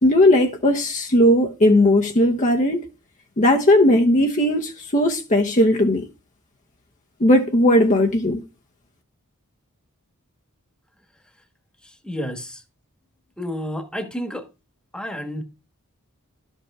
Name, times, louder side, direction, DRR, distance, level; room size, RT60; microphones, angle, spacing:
voice 1, 0.0-2.8 3.4-6.1 7.2-8.4, left 1 dB, 35° left, 1.0 m, -17 dB
voice 2, 11.8-12.6 13.4-14.5 14.9-15.4, equal, 5° left, 1.4 m, -30 dB
12.0 x 5.5 x 4.8 m
head